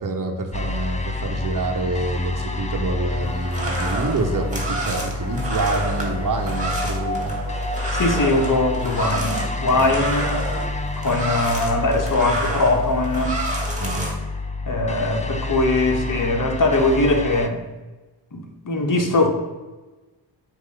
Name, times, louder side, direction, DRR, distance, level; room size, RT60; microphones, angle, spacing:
voice 1, 0.0-7.4 9.8-10.1 13.8-14.1, right 2 dB, 45° right, 3 dB, 1.2 m, -27 dB
sound 1, 0.5-17.5, left 2 dB, 15° left, 0.7 m, -28 dB
sound 2, 3.2-14.1, right 2 dB, 15° right, 2.0 m, -30 dB
voice 2, 7.9-10.5 11.0-13.4 14.6-17.6 18.3-19.3, left 2 dB, 45° left, 1 dB, 1.6 m, -21 dB
8.0 x 3.0 x 5.5 m, 1.2 s
cardioid pair, 60°, 43 cm